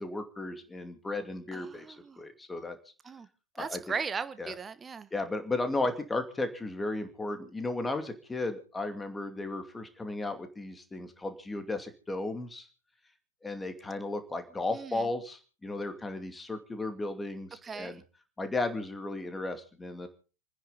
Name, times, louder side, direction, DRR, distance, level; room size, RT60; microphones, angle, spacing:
voice 1, 0.0-2.8 3.6-3.8 4.4-4.5 5.1-12.7 13.4-18.0 18.4-20.1, left 2 dB, 10° left, 2.5 m, -35 dB
voice 2, 1.5-2.2 3.0-3.3 3.5-5.1 14.7-15.1 17.6-18.0, right 5 dB, 20° right, 1.3 m, -38 dB
29.5 x 10.0 x 4.0 m
figure-of-eight pair, 95°, 0 cm